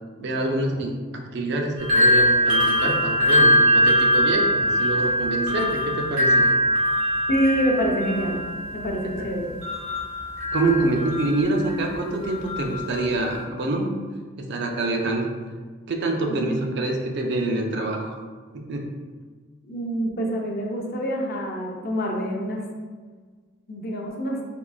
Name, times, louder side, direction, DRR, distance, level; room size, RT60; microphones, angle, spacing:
voice 1, 0.2-6.5 10.5-13.9 14.4-15.3 15.9-18.2 18.5-18.9, right 2 dB, 55° right, 2 dB, 0.4 m, -26 dB
sound 1, 1.8-11.8 12.2-13.4, equal, 80° right, 1.2 m, -22 dB
voice 2, 7.3-8.4 8.7-9.5 16.4-16.6 19.7-22.6 23.7-24.4, equal, 50° left, 0 dB, 0.4 m, -26 dB
3.6 x 2.3 x 2.3 m, 1.5 s
head